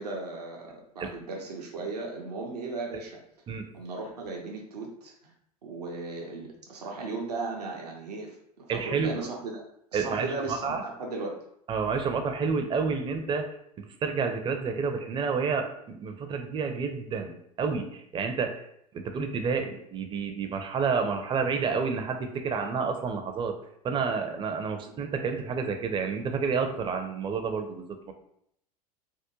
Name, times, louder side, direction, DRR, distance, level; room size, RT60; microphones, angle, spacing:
voice 1, 0.0-3.2 3.7-5.3 5.6-9.6 9.9-11.4, right 3 dB, 85° right, -1 dB, 0.6 m, -36 dB
voice 2, 8.7-9.3 9.9-10.8 11.7-13.5 13.8-18.6 18.9-23.6 23.8-28.1, right 5 dB, 25° right, 5 dB, 0.4 m, -29 dB
3.5 x 2.1 x 2.9 m, 0.72 s
hypercardioid pair, 75°, 20 cm